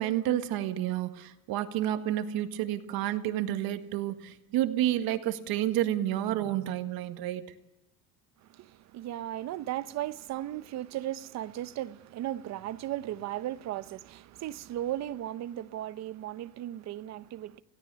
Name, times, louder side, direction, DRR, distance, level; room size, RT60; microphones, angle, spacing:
voice 1, 0.0-7.5, right 12 dB, 70° right, 1.8 m, -30 dB
voice 2, 8.4-17.6, right 13 dB, 45° right, 0.8 m, -36 dB
29.0 x 17.0 x 6.9 m
cardioid pair, 175°, 38 cm